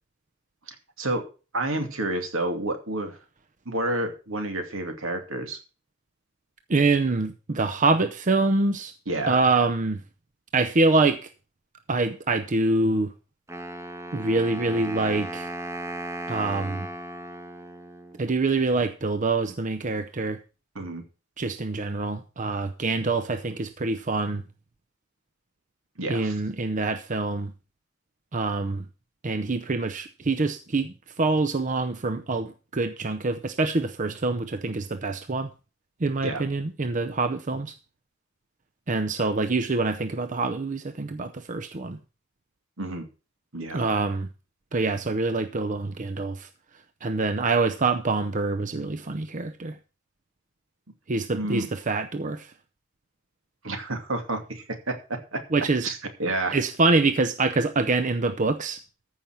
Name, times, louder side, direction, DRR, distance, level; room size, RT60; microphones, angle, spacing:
voice 1, 0.7-1.2 1.5-3.2 3.7-5.6 9.1-9.5 20.7-21.0 26.0-26.3 36.2-36.4 42.8-43.1 43.5-43.9 51.3-51.7 53.6-55.4 55.8-56.6, right 2 dB, 75° right, 5 dB, 2.6 m, -30 dB
voice 2, 6.7-8.9 9.3-10.0 10.5-11.3 11.9-13.1 14.1-15.5 16.3-16.9 18.2-20.4 21.4-24.4 26.1-27.5 28.3-28.8 29.2-35.5 36.0-37.7 38.9-42.0 43.7-44.3 44.7-46.5 47.0-49.8 51.1-52.5 55.5-55.9 56.5-58.8, right 3 dB, 40° right, 10 dB, 0.7 m, -25 dB
Wind instrument woodwind instrument, 13.5-18.5, right 1 dB, 15° right, 1.0 m, -36 dB
14.5 x 5.8 x 6.1 m, 0.34 s
head